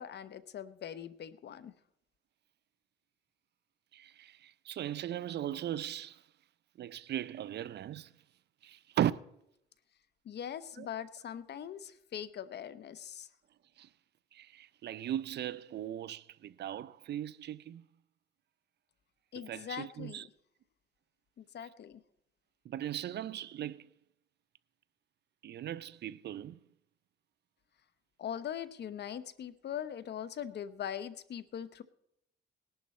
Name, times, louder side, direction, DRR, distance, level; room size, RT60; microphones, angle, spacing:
voice 1, 0.0-1.7 10.2-13.3 19.3-20.3 21.4-22.0 28.2-31.8, left 9 dB, 60° left, 0.8 m, -41 dB
voice 2, 3.9-6.2 6.8-8.1 8.6-9.1 10.8-10.9 13.8-13.9 14.3-17.8 19.5-20.3 22.6-23.9 25.4-26.6, right 11 dB, 60° right, 0.5 m, -38 dB
18.5 x 11.5 x 4.2 m
cardioid pair, 90°, 20 cm